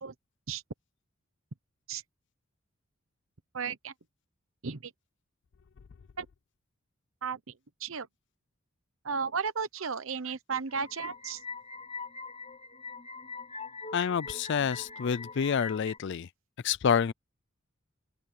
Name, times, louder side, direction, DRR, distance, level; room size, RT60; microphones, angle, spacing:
voice 1, 3.5-3.9 4.6-4.9 6.2-6.3 7.2-7.4 7.8-8.1 9.0-11.4, right 5 dB, 70° right, 0.9 m, -34 dB
sound 1, 10.7-16.0, left 4 dB, 30° left, 5.6 m, -43 dB
voice 2, 13.9-16.3 16.6-17.1, left 7 dB, 55° left, 0.4 m, -28 dB
open air
head